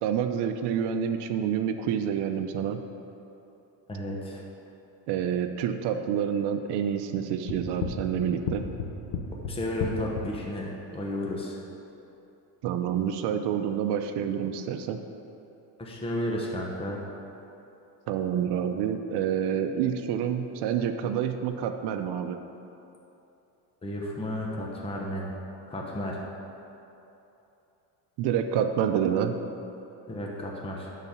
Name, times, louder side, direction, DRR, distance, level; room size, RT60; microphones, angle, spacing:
voice 1, 0.0-2.8 5.1-8.6 12.6-15.0 18.1-22.4 28.2-29.4, right 8 dB, 70° right, 7 dB, 0.7 m, -28 dB
voice 2, 3.9-4.4 9.5-11.6 15.8-17.0 23.8-25.3 25.7-26.2 30.1-30.9, left 1 dB, 15° left, -2 dB, 1.0 m, -33 dB
sound 1, 7.5-10.3, left 6 dB, 90° left, 1.2 m, -31 dB
10.5 x 4.1 x 6.9 m, 2.9 s
cardioid pair, 130°, 41 cm